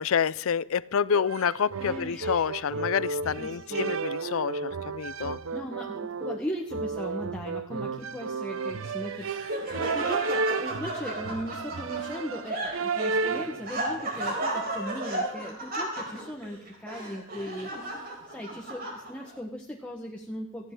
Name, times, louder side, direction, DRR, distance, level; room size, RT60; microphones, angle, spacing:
voice 1, 0.0-5.4, left 7 dB, 80° left, 0.5 m, -28 dB
sound 1, 1.1-13.7, right 4 dB, 75° right, 0.6 m, -32 dB
voice 2, 1.8-2.9 3.4-4.0 5.5-20.7, equal, 5° left, 1.1 m, -38 dB
Laughter, 8.8-19.4, right 1 dB, 45° right, 4.2 m, -34 dB
18.0 x 14.5 x 3.7 m
head